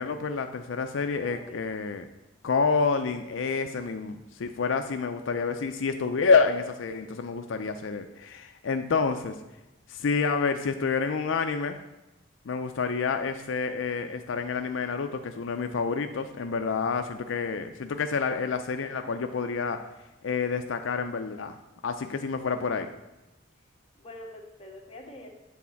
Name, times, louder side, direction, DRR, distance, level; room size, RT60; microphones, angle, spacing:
voice 1, 0.0-2.1 2.4-9.4 9.9-11.8 12.5-19.8 20.2-21.6 21.8-22.9, left 5 dB, 80° left, 7 dB, 0.5 m, -28 dB
voice 2, 1.2-1.6 23.9-25.3, left 1 dB, 30° left, -1 dB, 1.4 m, -45 dB
8.4 x 4.2 x 7.0 m, 0.99 s
head